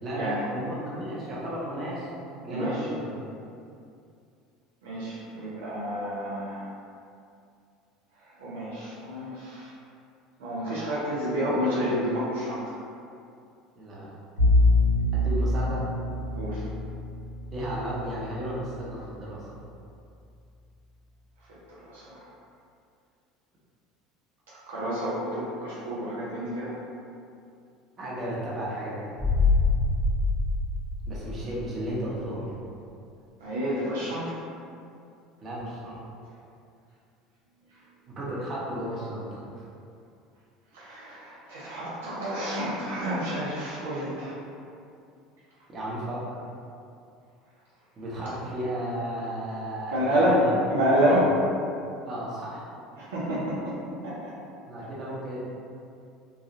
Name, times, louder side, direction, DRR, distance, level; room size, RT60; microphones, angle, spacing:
voice 1, 0.0-2.1 2.4-3.2 13.8-14.1 15.1-15.8 17.5-19.6 28.0-29.1 31.1-32.6 35.4-36.0 38.1-39.6 45.7-46.2 48.0-50.8 51.1-51.3 52.0-52.6 54.6-55.4, right 1 dB, 40° right, -6 dB, 0.9 m, -34 dB
voice 2, 4.8-6.6 8.4-9.7 10.4-12.6 16.3-16.6 21.8-22.2 24.7-26.7 33.4-34.4 40.7-44.4 49.9-50.4 50.7-51.3 53.0-53.8 54.0-54.3, equal, 80° right, -8 dB, 0.6 m, -28 dB
Bowed string instrument, 14.4-19.5, left 2 dB, 80° left, 1.4 m, -26 dB
sound 1, 29.2-31.9 32.2-32.3, left 3 dB, 5° right, 0.9 m, -25 dB
3.1 x 2.3 x 2.6 m, 2.5 s
hypercardioid pair, 75°, 0 cm